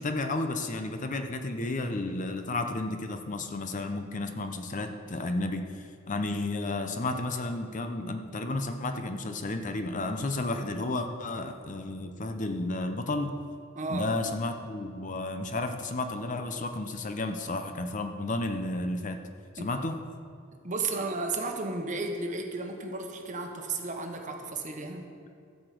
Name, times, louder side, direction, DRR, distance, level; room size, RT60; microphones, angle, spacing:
voice 1, 0.0-13.4 13.9-19.2 19.5-20.0, left 2 dB, 40° left, 6 dB, 0.7 m, -32 dB
voice 2, 13.7-14.1 19.6-19.7 20.6-25.1, right 3 dB, 40° right, 3 dB, 1.2 m, -33 dB
14.0 x 5.0 x 7.7 m, 2.4 s
head